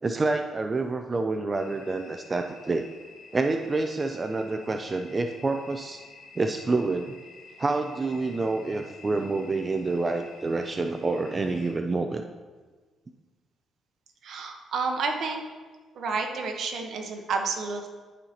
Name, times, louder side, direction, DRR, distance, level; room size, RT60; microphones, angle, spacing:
voice 1, 0.0-2.8 3.3-6.0 6.4-7.2 7.6-12.2, right 3 dB, 30° right, 5 dB, 0.4 m, -28 dB
sound 1, 1.5-11.7, left 3 dB, 85° left, 1.4 m, -50 dB
voice 2, 14.2-15.4 15.9-17.9, right 4 dB, 65° right, 4 dB, 1.0 m, -30 dB
11.5 x 5.5 x 2.9 m, 1.4 s
cardioid pair, 90°, 0 cm